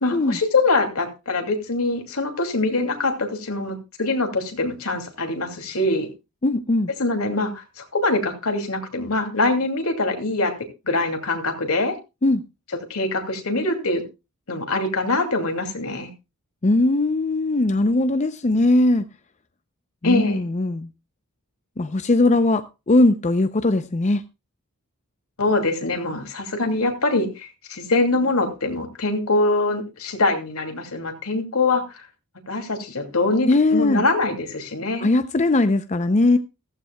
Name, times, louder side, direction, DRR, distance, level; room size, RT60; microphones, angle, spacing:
voice 1, 0.0-6.1 7.0-10.5 10.9-12.0 12.9-14.0 14.5-16.1 20.0-20.4 25.4-31.8 32.5-35.1, left 2 dB, 75° left, 2.5 m, -23 dB
voice 2, 6.4-6.9 12.2-12.4 16.6-19.0 20.0-20.9 21.8-24.2 33.5-34.1 35.0-36.4, left 2 dB, 30° left, 0.5 m, -19 dB
15.5 x 14.5 x 2.3 m
head